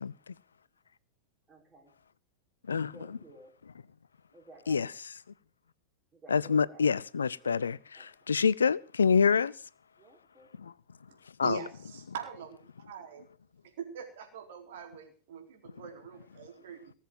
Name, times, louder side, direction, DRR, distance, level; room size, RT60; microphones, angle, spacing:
voice 1, 0.0-0.3 2.7-3.2 4.7-4.9 6.3-9.5 10.6-10.7 11.4-11.6, left 6 dB, 70° left, 0.6 m, -27 dB
voice 2, 1.5-1.9 2.9-3.5 4.3-4.9 6.1-6.9 7.4-8.1 10.0-10.5, right 2 dB, 20° right, 4.2 m, -54 dB
voice 3, 11.4-13.2 13.8-16.9, right 8 dB, 55° right, 4.3 m, -43 dB
19.0 x 7.4 x 7.8 m
figure-of-eight pair, 90°, 0 cm